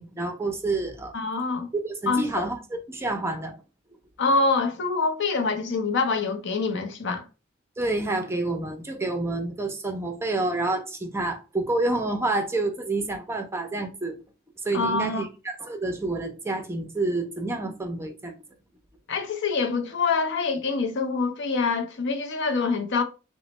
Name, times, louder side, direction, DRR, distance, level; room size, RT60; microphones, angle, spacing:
voice 1, 0.0-1.1 1.7-3.6 7.8-14.2 14.6-18.3, right 2 dB, 15° right, 0.5 m, -28 dB
voice 2, 1.1-1.7 2.1-2.5 4.2-7.2 14.7-15.3 19.1-23.0, left 4 dB, 60° left, 0.6 m, -25 dB
3.0 x 2.1 x 4.1 m
head